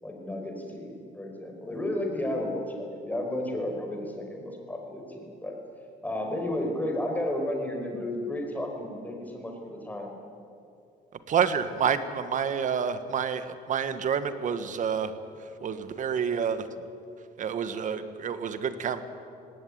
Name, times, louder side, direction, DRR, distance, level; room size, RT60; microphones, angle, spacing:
voice 1, 0.0-5.6 6.0-10.2, left 1 dB, 10° left, 2 dB, 4.7 m, -33 dB
voice 2, 11.3-15.1 15.6-16.7 17.4-19.0, right 7 dB, 50° right, 11 dB, 1.5 m, -28 dB
18.5 x 17.5 x 9.5 m, 2.5 s
cardioid pair, 110°, 17 cm